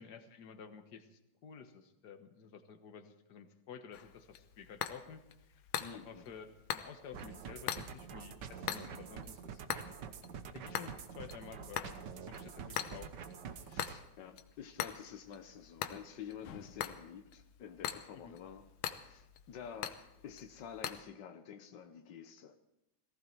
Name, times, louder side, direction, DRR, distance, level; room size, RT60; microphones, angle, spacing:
voice 1, 0.0-5.7 6.0-9.6 10.5-13.2 18.1-18.4, left 6 dB, 50° left, 8 dB, 1.2 m, -52 dB
sound 1, 3.9-21.0, left 10 dB, 70° left, 1.9 m, -44 dB
voice 2, 5.8-6.3 12.7-12.8 13.5-22.6, left 8 dB, 85° left, 8 dB, 0.9 m, -50 dB
sound 2, 7.1-14.0, right 6 dB, 80° right, 0.9 m, -47 dB
18.0 x 16.5 x 4.6 m, 0.87 s
omnidirectional pair, 3.4 m